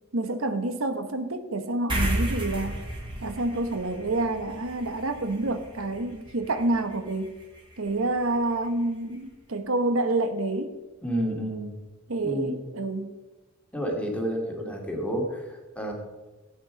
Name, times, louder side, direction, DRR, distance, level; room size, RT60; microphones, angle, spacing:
voice 1, 0.1-2.8 3.2-7.3 7.8-10.7 12.1-13.1, right 2 dB, 85° right, 9 dB, 1.0 m, -28 dB
sound 1, 1.9-8.7, right 1 dB, 25° right, 3.6 m, -34 dB
voice 2, 11.0-11.8 12.2-12.6 13.7-15.9, equal, 5° left, 1 dB, 2.3 m, -30 dB
16.0 x 8.5 x 5.0 m, 1.2 s
head